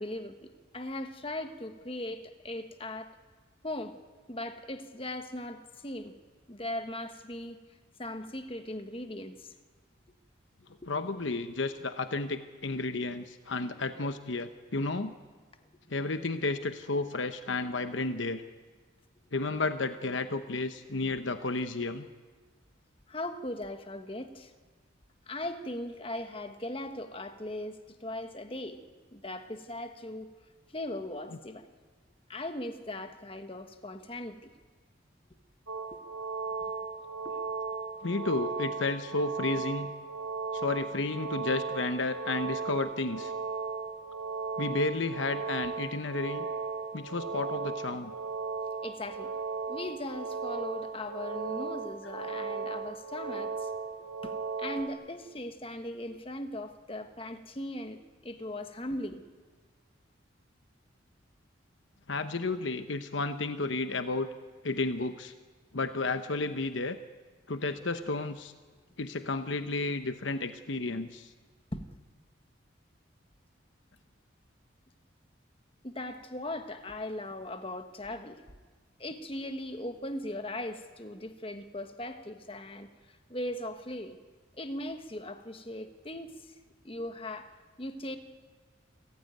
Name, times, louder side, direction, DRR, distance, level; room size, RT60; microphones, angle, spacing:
voice 1, 0.0-3.1 3.6-3.9 4.3-6.1 6.5-7.6 8.0-9.5 10.8-10.9 23.1-24.5 25.3-28.8 29.1-30.3 30.7-31.7 32.3-34.4 35.9-36.0 37.2-37.4 48.8-49.3 49.7-53.7 54.2-59.2 71.7-71.8 75.8-78.4 79.0-84.2 84.6-86.5 86.8-87.5 87.8-88.2, left 1 dB, 30° left, 8 dB, 1.4 m, -39 dB
voice 2, 10.9-15.1 15.9-18.4 19.3-22.1 38.0-39.9 40.5-43.3 44.6-46.4 46.9-48.1 62.1-64.3 64.6-65.3 65.7-67.0 67.5-68.5 69.0-71.3, left 3 dB, 70° left, 9 dB, 1.0 m, -32 dB
sound 1, 35.7-54.9, right 4 dB, 75° right, 3.2 m, -36 dB
28.0 x 15.0 x 9.3 m, 1.5 s
head